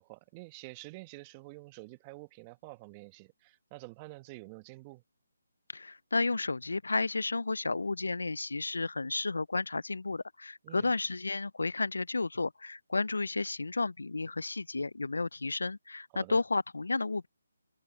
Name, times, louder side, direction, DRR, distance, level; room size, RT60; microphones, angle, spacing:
voice 1, 0.0-5.0 10.6-10.9 16.1-16.4, right 24 dB, 20° right, 1.0 m, -48 dB
voice 2, 5.7-17.3, left 3 dB, 85° left, 0.3 m, -32 dB
figure-of-eight pair, 155°, 0 cm